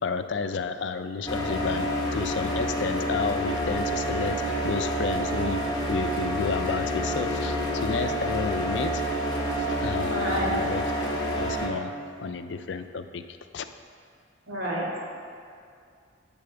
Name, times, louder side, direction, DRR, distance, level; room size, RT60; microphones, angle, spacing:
voice 1, 0.0-5.6 5.9-9.1 9.5-10.8 11.4-11.9 12.2-13.2 13.5-13.7, left 5 dB, 65° left, 9 dB, 0.4 m, -31 dB
sound 1, 1.3-11.7, equal, 20° left, 1.0 m, -28 dB
voice 2, 10.1-10.6 14.5-15.0, equal, 80° right, -5 dB, 1.9 m, -29 dB
10.0 x 4.2 x 6.9 m, 2.3 s
head